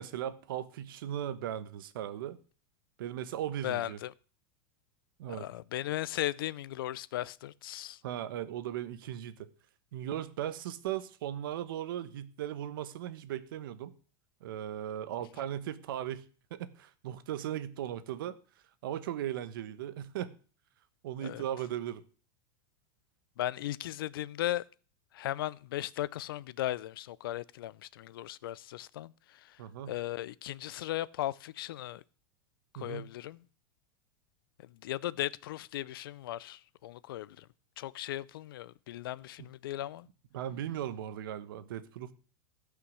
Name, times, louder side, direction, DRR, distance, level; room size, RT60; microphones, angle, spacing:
voice 1, 0.0-2.4 3.0-4.0 5.2-5.5 8.0-9.5 9.9-13.9 14.4-16.2 16.5-18.3 18.8-20.3 21.0-22.0 29.6-29.9 32.7-33.1 40.3-42.1, right 11 dB, 75° right, 1.2 m, -37 dB
voice 2, 3.6-4.1 5.3-8.0 21.2-21.4 23.4-24.6 25.1-29.6 29.9-32.0 32.7-33.4 34.6-37.5 37.8-40.1, left 14 dB, 90° left, 0.5 m, -37 dB
16.0 x 5.8 x 6.3 m
supercardioid pair, 165°, 12 cm